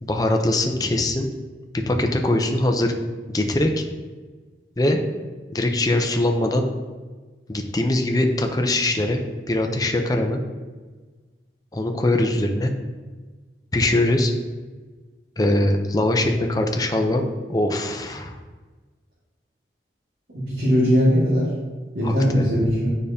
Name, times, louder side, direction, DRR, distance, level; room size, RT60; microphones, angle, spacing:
voice 1, 0.0-1.3 1.9-2.9 3.3-3.8 4.8-5.0 5.5-6.6 7.5-9.2 9.5-10.4 11.7-12.7 13.7-14.3 15.4-17.2 17.5-18.4 22.0-22.4, left 1 dB, 20° left, 4 dB, 0.6 m, -22 dB
voice 2, 20.3-21.5 21.9-22.9, equal, 60° right, -9 dB, 1.9 m, -19 dB
8.9 x 5.0 x 2.8 m, 1.3 s
head